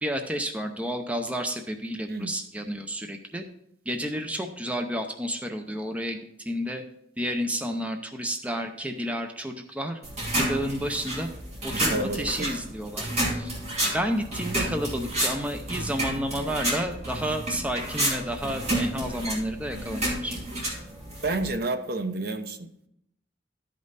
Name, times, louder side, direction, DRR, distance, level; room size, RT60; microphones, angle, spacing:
voice 1, 0.0-3.4 3.9-6.2 6.5-6.8 7.2-10.0 10.4-11.3 11.6-13.5 13.9-20.4, equal, 5° right, 5 dB, 0.6 m, -31 dB
sound 1, 10.0-21.5, right 1 dB, 35° right, 2.5 m, -30 dB
voice 2, 11.7-12.6 21.2-22.7, right 2 dB, 55° right, 8 dB, 0.7 m, -30 dB
12.5 x 5.3 x 4.0 m, 0.76 s
head